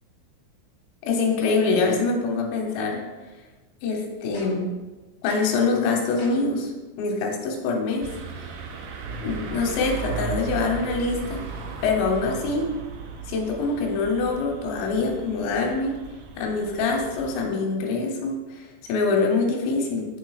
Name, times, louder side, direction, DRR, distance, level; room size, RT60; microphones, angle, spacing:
voice 1, 1.0-3.0 3.8-4.7 5.2-6.7 7.0-8.1 8.4-8.5 9.2-11.4 11.8-12.7 13.3-15.9 16.4-20.1, left 4 dB, 80° left, 1 dB, 3.1 m, -24 dB
sound 1, 4.3-4.8 5.3-5.7 6.2-6.6, left 1 dB, 60° left, 2.8 m, -42 dB
sound 2, 8.0-17.5, right 5 dB, 80° right, 2.8 m, -36 dB
8.3 x 5.9 x 2.4 m, 1.2 s
omnidirectional pair, 5.2 m